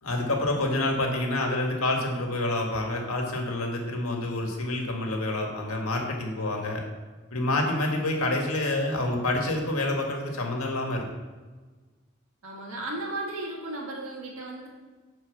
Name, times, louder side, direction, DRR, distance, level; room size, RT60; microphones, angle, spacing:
voice 1, 0.0-6.8 7.3-11.1, left 2 dB, 90° left, 1 dB, 1.8 m, -28 dB
voice 2, 12.4-14.7, right 2 dB, 80° right, -2 dB, 1.8 m, -35 dB
9.3 x 4.5 x 6.7 m, 1.3 s
head